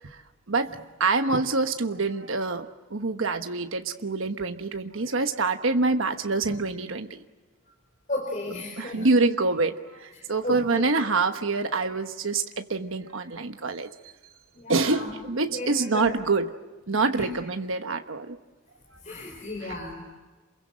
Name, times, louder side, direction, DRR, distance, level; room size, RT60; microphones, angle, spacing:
voice 1, 0.5-7.2 8.8-13.9 14.7-16.5 16.9-18.4 19.6-19.7, right 3 dB, 75° right, 7 dB, 1.2 m, -26 dB
voice 2, 8.1-9.1 10.4-10.8 14.5-15.1 15.5-16.2 17.0-17.3 19.0-20.0, left 2 dB, 35° left, 1 dB, 4.4 m, -34 dB
28.5 x 22.5 x 7.7 m, 1.3 s
head